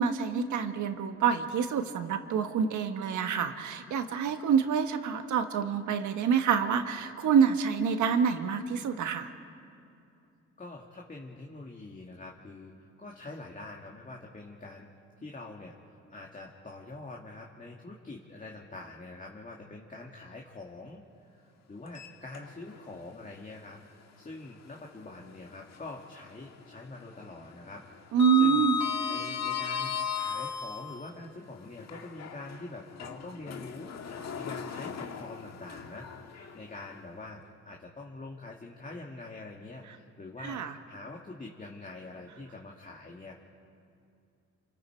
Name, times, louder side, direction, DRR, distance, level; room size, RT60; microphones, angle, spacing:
voice 1, 0.0-9.3 28.1-28.8 40.4-40.7, right 7 dB, 75° right, 7 dB, 1.6 m, -27 dB
voice 2, 10.6-14.9 15.2-21.4 21.7-27.8 28.1-28.7 29.1-43.3, left 2 dB, 25° left, -1 dB, 2.2 m, -45 dB
Sliding door, 21.9-22.8 23.2-23.3 25.0-26.1 26.4-26.7 27.0-31.1 31.8-37.0, left 7 dB, 60° left, 1.7 m, -36 dB
28.0 x 27.0 x 4.6 m, 2.6 s
cardioid pair, 90°, 30 cm